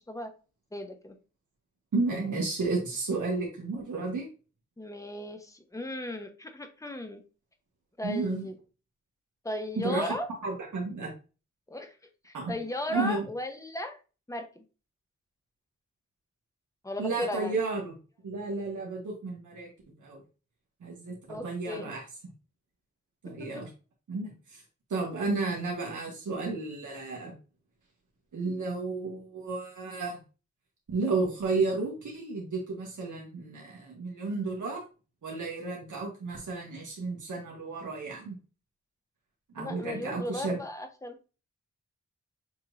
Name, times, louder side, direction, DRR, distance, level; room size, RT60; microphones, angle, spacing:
voice 1, 0.7-1.1 4.8-7.2 8.0-8.5 9.4-10.3 11.7-11.9 12.2-14.0 14.3-14.6 16.8-17.6 21.3-21.9 39.6-41.1, left 1 dB, 10° left, 6 dB, 0.9 m, -36 dB
voice 2, 1.9-4.3 8.0-8.5 9.8-10.1 10.4-11.1 12.3-12.5 12.9-13.3 17.0-17.9 18.2-19.7 20.0-20.2 20.8-21.2 21.4-22.0 23.2-23.7 24.1-24.6 24.9-27.3 28.3-30.2 30.9-34.8 35.2-38.4 39.5-40.6, right 3 dB, 85° right, -2 dB, 1.4 m, -32 dB
7.0 x 3.0 x 2.6 m, 0.33 s
cardioid pair, 65°, 30 cm